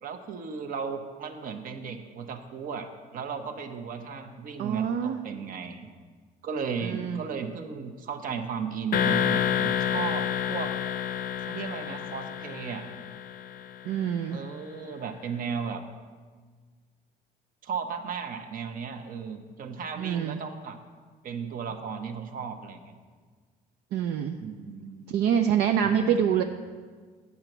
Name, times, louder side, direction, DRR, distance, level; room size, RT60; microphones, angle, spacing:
voice 1, 0.0-5.9 6.4-10.8 11.5-12.9 14.3-15.8 17.6-20.8 21.2-23.0 24.4-25.2 25.8-26.4, right 6 dB, 55° right, 7 dB, 0.9 m, -35 dB
voice 2, 4.6-5.3 6.8-7.2 13.9-14.4 20.0-20.4 23.9-24.4 25.1-26.4, right 8 dB, 70° right, 6 dB, 0.5 m, -26 dB
sound 1, 8.9-13.8, left 9 dB, 60° left, 0.6 m, -29 dB
8.5 x 6.8 x 6.0 m, 1.5 s
cardioid pair, 110°, 17 cm